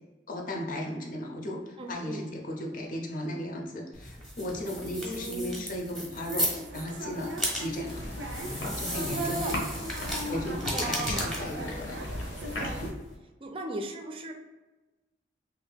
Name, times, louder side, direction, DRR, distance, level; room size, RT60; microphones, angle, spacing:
voice 1, 0.3-8.0 8.8-9.4 10.3-12.0, equal, 45° left, 0 dB, 0.6 m, -36 dB
voice 2, 1.8-2.3 5.0-5.6 9.1-9.7 10.7-11.4 13.4-14.3, right 1 dB, 30° right, 4 dB, 0.4 m, -36 dB
sound 1, 3.9-13.1, equal, 5° left, 0.7 m, -36 dB
sound 2, 6.1-12.9, right 1 dB, 90° right, 0.5 m, -40 dB
sound 3, 7.9-12.9, left 1 dB, 75° left, 0.8 m, -37 dB
3.1 x 2.5 x 3.3 m, 1.2 s
head